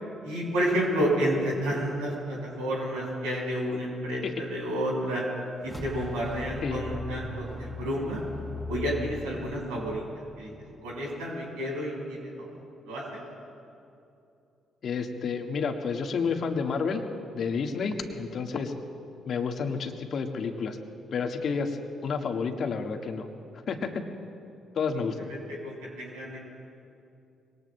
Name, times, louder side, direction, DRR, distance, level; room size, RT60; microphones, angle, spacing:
voice 1, 0.2-5.2 5.6-8.2 8.7-10.0 10.4-10.5 10.8-12.5 12.9-13.2 25.3-25.4 25.6-26.4, equal, 75° right, -3 dB, 4.6 m, -30 dB
sound 1, 5.6-11.0, left 2 dB, 10° right, 4.4 m, -39 dB
voice 2, 14.8-17.0 17.3-18.7 19.2-20.8 21.1-21.8 22.0-23.3 23.5-24.0 24.7-25.2, left 5 dB, 55° left, 4 dB, 1.6 m, -30 dB
26.0 x 23.0 x 2.2 m, 2.6 s
hypercardioid pair, 45°, 0 cm